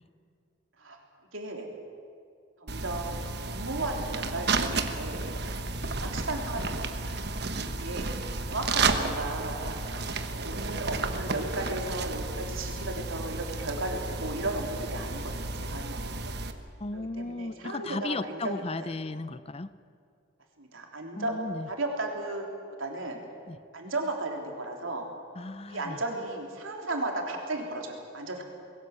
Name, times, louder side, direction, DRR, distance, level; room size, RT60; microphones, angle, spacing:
voice 1, 1.3-1.7 2.6-5.3 6.0-7.2 7.8-8.1 8.5-9.8 10.2-16.3 16.9-18.9 20.6-21.3 21.7-22.4 22.8-23.2 23.7-25.1 25.7-28.4, right 2 dB, 90° right, 2 dB, 3.4 m, -35 dB
sound 1, 2.7-16.5, right 3 dB, 55° right, 1.2 m, -32 dB
voice 2, 16.8-19.7 21.2-21.7 23.5-23.6 25.4-26.0, left 2 dB, 30° left, 15 dB, 0.6 m, -35 dB
21.0 x 17.5 x 8.1 m, 2.4 s
head